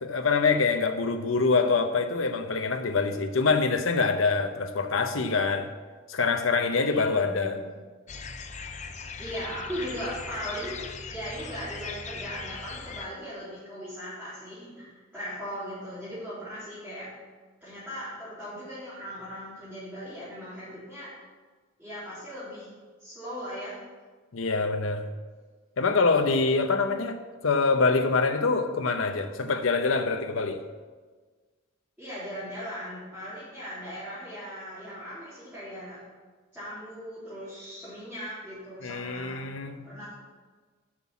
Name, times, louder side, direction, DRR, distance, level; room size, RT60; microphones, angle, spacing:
voice 1, 0.0-5.7 6.1-7.6 24.3-25.1 25.8-30.6 38.8-39.9, left 4 dB, 90° left, 0.8 m, -25 dB
voice 2, 6.8-7.7 9.2-17.1 17.6-21.1 21.8-22.7 23.0-23.8 32.0-36.0 36.5-39.4 39.8-40.1, equal, 5° right, 3.4 m, -38 dB
sound 1, 8.1-13.1, left 5 dB, 35° left, 0.6 m, -39 dB
7.4 x 6.1 x 7.3 m
head